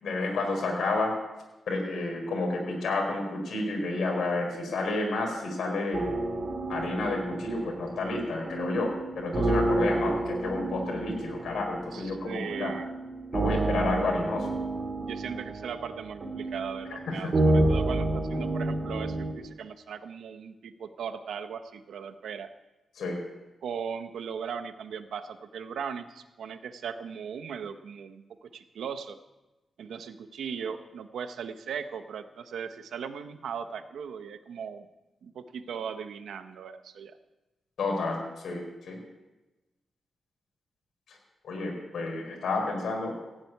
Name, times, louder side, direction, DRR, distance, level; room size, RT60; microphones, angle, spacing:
voice 1, 0.0-1.2 1.7-6.2 6.7-12.7 13.3-14.6 16.9-17.3 22.9-23.2 37.8-39.0 41.1-41.2 41.4-43.1, left 2 dB, 70° left, 0 dB, 4.6 m, -30 dB
sound 1, 5.9-19.3, right 2 dB, 35° right, 2.9 m, -30 dB
voice 2, 11.9-12.9 15.0-22.5 23.6-29.2 29.8-34.9 35.2-37.1, right 7 dB, 80° right, 9 dB, 1.1 m, -38 dB
16.5 x 7.8 x 9.5 m, 1.1 s
wide cardioid pair, 155°, 0 cm